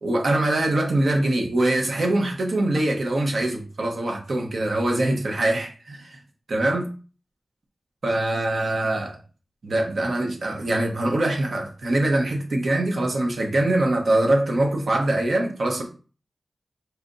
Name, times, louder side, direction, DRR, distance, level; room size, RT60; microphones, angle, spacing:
voice 1, 0.0-6.2 6.5-6.9 8.0-9.2 9.6-15.8, right 1 dB, 70° right, 1.1 m, -23 dB
4.2 x 3.3 x 2.7 m
wide cardioid pair, 100°, 0 cm